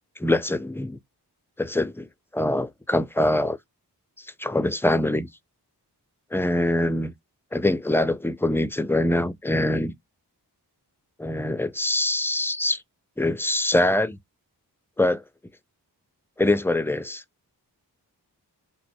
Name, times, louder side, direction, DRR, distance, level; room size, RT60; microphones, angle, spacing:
voice 1, 0.2-1.0 1.6-2.1 2.3-3.6 4.4-5.3 6.3-7.1 7.5-9.9 11.2-12.8 13.2-14.2 15.0-15.2 16.4-17.2, left 1 dB, 5° left, 0.3 m, -23 dB
3.1 x 2.0 x 4.1 m
cardioid pair, 50°, 41 cm